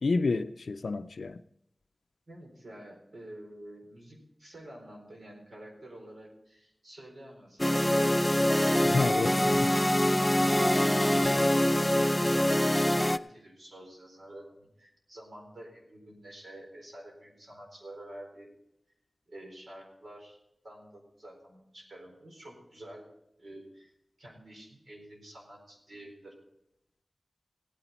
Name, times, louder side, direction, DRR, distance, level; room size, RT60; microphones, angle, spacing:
voice 1, 0.0-1.4 8.9-9.6, left 3 dB, 85° left, 0.4 m, -29 dB
voice 2, 2.3-9.2 9.6-18.5 19.3-20.4 20.6-23.1 23.4-23.9 24.2-26.4, right 1 dB, 80° right, 4.3 m, -48 dB
sound 1, 7.6-13.2, left 1 dB, 15° left, 0.5 m, -24 dB
16.5 x 9.9 x 4.2 m
wide cardioid pair, 45°, 0 cm